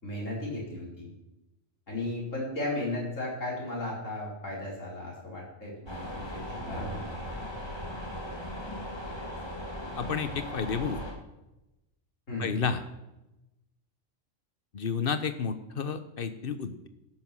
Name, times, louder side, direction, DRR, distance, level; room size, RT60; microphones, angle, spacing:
voice 1, 0.0-1.1 1.9-7.1 12.3-12.6, left 2 dB, 75° left, -4 dB, 5.3 m, -35 dB
sound 1, 5.9-11.1, equal, 20° left, 2.4 m, -38 dB
voice 2, 9.9-11.0 12.4-12.8 14.7-16.9, left 6 dB, 45° left, 10 dB, 1.2 m, -31 dB
13.5 x 10.5 x 6.3 m, 0.95 s
omnidirectional pair, 1.3 m